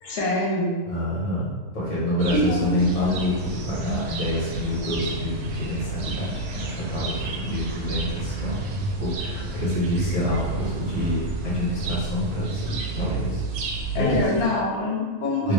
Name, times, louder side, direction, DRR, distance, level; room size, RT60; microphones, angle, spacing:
voice 1, 0.0-0.7 2.3-2.7 3.1-3.2 13.9-15.5, left 2 dB, 75° left, -3 dB, 1.3 m, -25 dB
voice 2, 0.9-8.6 9.0-13.4 13.9-14.2 15.4-15.5, left 1 dB, 55° left, -7 dB, 1.4 m, -27 dB
sound 1, 2.2-14.5, right 3 dB, 80° right, 1.0 m, -31 dB
3.0 x 2.9 x 3.1 m, 1.4 s
omnidirectional pair, 1.6 m